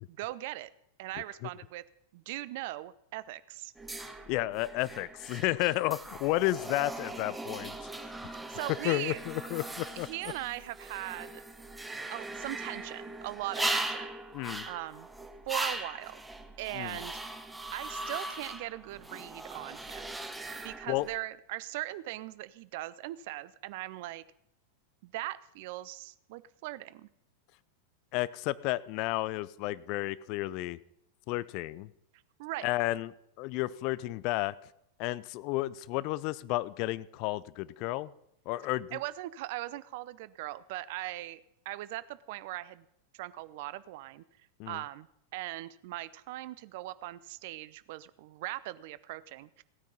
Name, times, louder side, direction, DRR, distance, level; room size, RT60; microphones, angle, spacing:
voice 1, 0.1-0.7 1.0-1.8 2.1-3.7 8.5-9.2 9.9-11.4 12.1-14.1 14.7-15.1 15.5-16.2 16.6-17.2 17.7-20.1 20.6-24.2 25.0-27.1 32.4-32.7 38.9-42.9 43.1-44.2 44.7-45.1 45.3-49.6, right 16 dB, 50° right, 17 dB, 0.5 m, -40 dB
sound 1, 3.8-21.2, right 2 dB, 5° right, 1.0 m, -39 dB
voice 2, 4.3-7.7 8.8-10.1 14.3-14.7 16.7-17.0 20.9-21.1 28.1-30.8 31.3-31.9 32.6-34.5 35.0-38.1 38.5-39.0 44.6-44.8, left 18 dB, 45° left, 19 dB, 0.5 m, -32 dB
16.5 x 9.2 x 5.4 m, 0.78 s
figure-of-eight pair, 90°, 0 cm